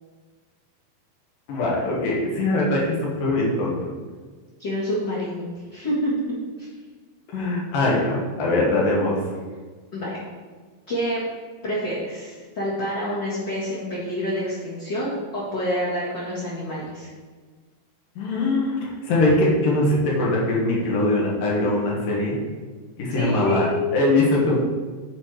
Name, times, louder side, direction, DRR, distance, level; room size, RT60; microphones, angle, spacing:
voice 1, 1.5-3.7 7.3-9.2 18.2-18.8 19.0-22.4 23.0-23.7 23.9-24.6, left 2 dB, 65° left, -4 dB, 3.0 m, -22 dB
voice 2, 4.6-5.4 5.7-6.1 6.6-6.7 9.9-10.1 10.9-11.2 11.6-17.1 23.1-23.8, equal, 40° left, -10 dB, 1.8 m, -27 dB
10.5 x 4.4 x 4.8 m, 1.5 s
omnidirectional pair, 4.6 m